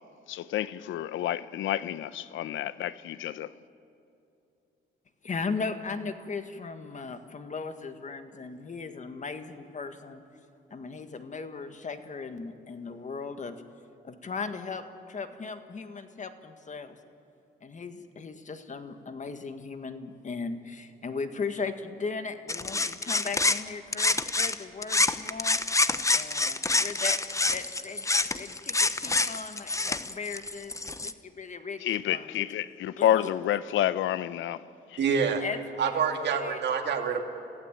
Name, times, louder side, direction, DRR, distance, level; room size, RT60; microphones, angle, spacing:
voice 1, 0.3-3.5 31.8-34.6 34.9-35.0, left 12 dB, 80° left, 0.8 m, -29 dB
voice 2, 5.2-10.2 10.7-13.6 14.0-17.0 17.6-25.6 26.1-27.2 27.5-30.7 31.0-32.5 33.0-33.3 35.4-35.9 36.2-36.6, left 4 dB, 40° left, 1.8 m, -37 dB
sound 1, 22.5-24.6 24.8-31.1, left 3 dB, 15° left, 0.9 m, -27 dB
voice 3, 35.0-35.4 35.8-37.2, right 6 dB, 60° right, 2.5 m, -26 dB
29.5 x 15.5 x 9.1 m
cardioid pair, 90°, 20 cm